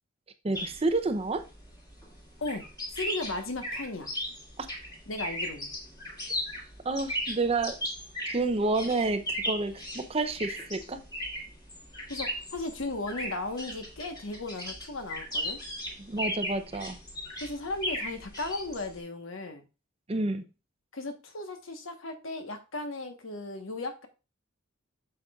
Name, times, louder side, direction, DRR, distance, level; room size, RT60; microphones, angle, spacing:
voice 1, 0.4-1.4 4.6-4.7 6.8-7.8 8.3-11.0 16.0-17.0 20.1-20.4, right 3 dB, 30° right, 9 dB, 0.6 m, -29 dB
sound 1, 0.5-19.0, equal, 20° left, 2.0 m, -37 dB
voice 2, 2.9-4.1 5.1-5.7 12.1-15.6 17.4-19.6 20.9-24.1, left 2 dB, 70° left, 6 dB, 1.2 m, -36 dB
8.3 x 6.6 x 2.4 m, 0.29 s
head